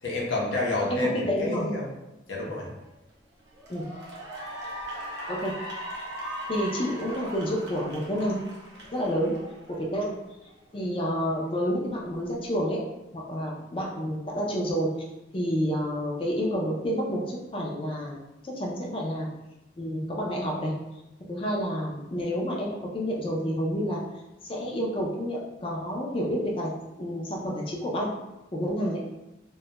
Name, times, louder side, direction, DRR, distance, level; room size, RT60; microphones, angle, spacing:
voice 1, 0.0-1.9 2.3-2.7, left 2 dB, 90° left, -3 dB, 0.7 m, -29 dB
voice 2, 0.9-1.7 3.7-3.8 5.3-5.5 6.5-8.4 8.9-9.3 9.7-10.1 10.7-12.8 13.1-14.9 15.3-18.2 18.4-19.3 19.8-20.7 21.3-24.0 24.4-26.7 27.0-28.1 28.5-29.0, equal, 30° left, -2 dB, 0.4 m, -29 dB
Cheering / Applause, 2.8-3.1 3.5-10.1, equal, 65° right, 0.7 m, -39 dB
2.2 x 2.0 x 2.9 m, 0.96 s
head